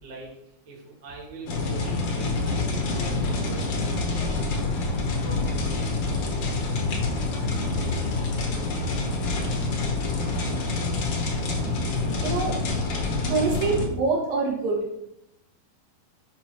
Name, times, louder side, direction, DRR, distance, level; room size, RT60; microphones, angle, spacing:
voice 1, 0.0-5.0, right 2 dB, 35° right, -4 dB, 1.2 m, -43 dB
sound 1, 1.4-13.9, left 3 dB, 75° left, 1.3 m, -27 dB
voice 2, 12.2-12.6 13.2-14.9, right 4 dB, 70° right, -3 dB, 3.4 m, -25 dB
10.5 x 5.2 x 3.0 m, 0.82 s
omnidirectional pair, 4.4 m